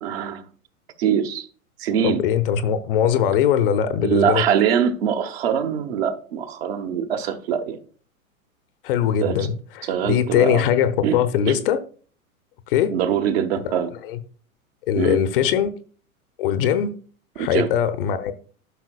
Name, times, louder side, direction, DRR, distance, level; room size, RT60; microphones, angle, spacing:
voice 1, 0.0-0.4 1.0-1.5 1.8-2.2 4.0-7.8 9.2-9.5 9.9-10.7 11.0-11.2 11.5-11.6 12.9-13.9 15.0-15.2 17.4-17.7, right 8 dB, 45° right, 1.0 m, -23 dB
voice 2, 2.0-4.4 8.8-11.8 12.7-12.9 13.6-13.8 14.0-14.2 14.9-15.7 16.4-16.9 17.4-18.3, left 9 dB, 40° left, 0.7 m, -21 dB
12.5 x 5.9 x 2.3 m
figure-of-eight pair, 100°, 43 cm